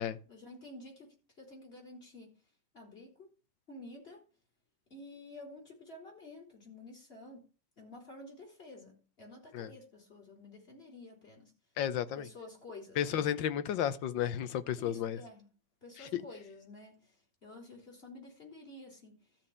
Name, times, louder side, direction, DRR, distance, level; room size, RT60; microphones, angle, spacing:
voice 1, 0.0-2.3 2.7-3.3 3.7-4.3 4.9-7.5 7.8-11.5 12.1-13.4 14.8-15.5 15.8-19.4, left 2 dB, 30° left, 4.0 m, -51 dB
voice 2, 11.8-12.2 13.0-15.2 16.1-16.2, left 10 dB, 85° left, 1.6 m, -32 dB
13.5 x 4.5 x 8.6 m
omnidirectional pair, 2.0 m